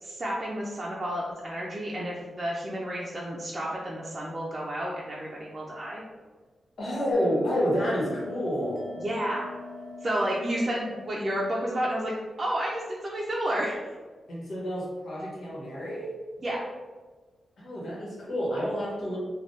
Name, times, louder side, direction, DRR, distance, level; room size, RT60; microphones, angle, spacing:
voice 1, 0.0-6.0 9.0-9.5 10.0-12.1 12.4-13.8 16.4-16.7, right 1 dB, 35° right, -5 dB, 0.5 m, -31 dB
voice 2, 6.8-8.9 14.3-16.1 17.6-19.2, equal, 75° left, -6 dB, 1.1 m, -29 dB
Bell, 7.1-12.2, left 2 dB, 55° left, 0.6 m, -42 dB
3.3 x 2.3 x 2.6 m, 1.3 s
cardioid pair, 65°, 0 cm